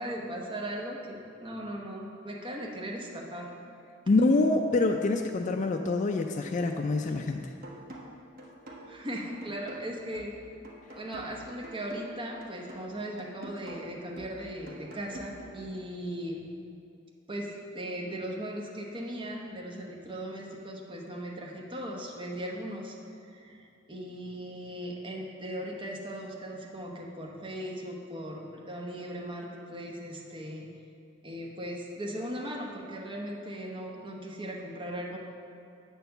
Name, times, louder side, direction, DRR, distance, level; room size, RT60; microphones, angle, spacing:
voice 1, 0.0-3.5 8.8-10.3 10.9-16.5 17.3-23.0 23.2-30.7 31.2-35.2, equal, 25° right, -1 dB, 0.9 m, -38 dB
voice 2, 4.1-7.5, left 3 dB, 40° left, 4 dB, 0.3 m, -26 dB
sound 1, 7.6-15.6, right 1 dB, 45° right, 1.1 m, -47 dB
7.9 x 4.6 x 6.6 m, 2.6 s
head